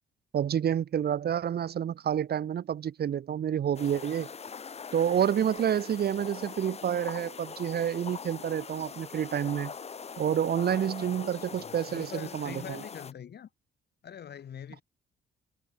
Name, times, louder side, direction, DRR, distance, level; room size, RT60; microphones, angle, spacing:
voice 1, 0.3-4.3 4.9-9.7 10.2-12.8, right 9 dB, 55° right, 1.1 m, -29 dB
sound 1, 3.7-13.1, left 6 dB, 30° left, 0.9 m, -42 dB
voice 2, 11.1-13.5 14.0-14.8, left 9 dB, 55° left, 2.2 m, -44 dB
cardioid pair, 90°, 20 cm